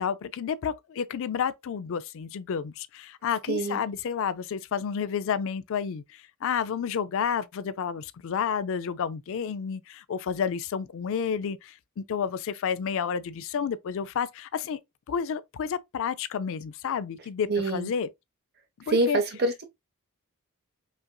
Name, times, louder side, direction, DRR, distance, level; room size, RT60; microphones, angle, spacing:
voice 1, 0.0-6.0 6.4-14.8 15.1-18.1 18.9-19.2, left 7 dB, 60° left, 0.4 m, -30 dB
voice 2, 3.5-3.8 17.5-17.9 18.9-19.6, right 2 dB, 45° right, 0.8 m, -26 dB
5.4 x 2.5 x 2.2 m
head